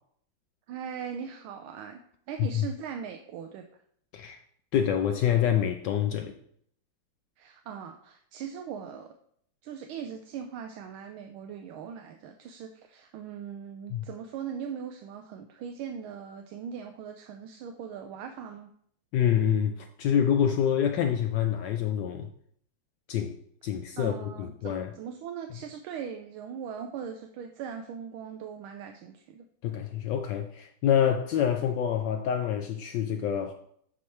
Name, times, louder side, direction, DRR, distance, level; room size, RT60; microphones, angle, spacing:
voice 1, 0.7-2.0 2.3-3.6 7.4-9.1 9.6-18.7 24.0-29.4, right 7 dB, 80° right, 1.4 m, -40 dB
voice 2, 4.7-6.4 13.9-14.1 19.1-22.3 23.1-23.4 23.6-24.9 29.6-33.5, left 9 dB, 80° left, 1.0 m, -26 dB
8.5 x 3.1 x 5.6 m
omnidirectional pair, 2.4 m